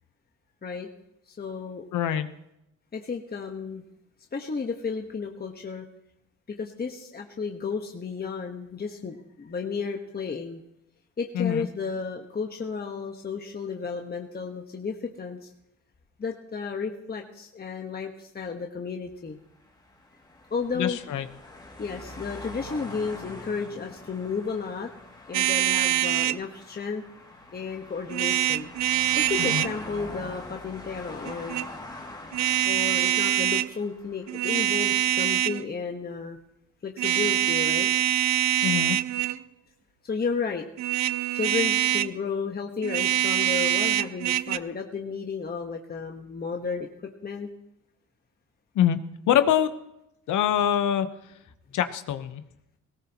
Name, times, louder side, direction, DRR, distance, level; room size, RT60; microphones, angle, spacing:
voice 1, 1.3-1.9 2.9-3.8 4.3-5.8 6.5-10.6 11.2-15.5 16.2-19.4 20.5-21.0 21.8-24.9 25.3-27.0 27.5-28.7 29.2-31.6 32.6-36.4 36.8-37.9 40.0-40.7 41.3-46.9 47.2-47.5, left 5 dB, 30° left, 2 dB, 1.3 m, -33 dB
voice 2, 1.9-2.3 11.3-11.7 20.7-21.3 29.4-29.7 38.6-39.0 48.7-49.0 49.3-49.7 50.3-51.1 51.7-52.4, left 10 dB, 80° left, 10 dB, 1.0 m, -24 dB
sound 1, 19.4-34.8, left 2 dB, 15° left, 2.4 m, -44 dB
sound 2, 25.3-26.4 28.1-29.7 31.2-31.7 32.3-33.7 34.3-35.6 37.0-39.4 40.8-42.2 42.8-44.6, right 13 dB, 65° right, 0.5 m, -24 dB
18.0 x 17.0 x 3.0 m, 0.83 s
cardioid pair, 90°, 30 cm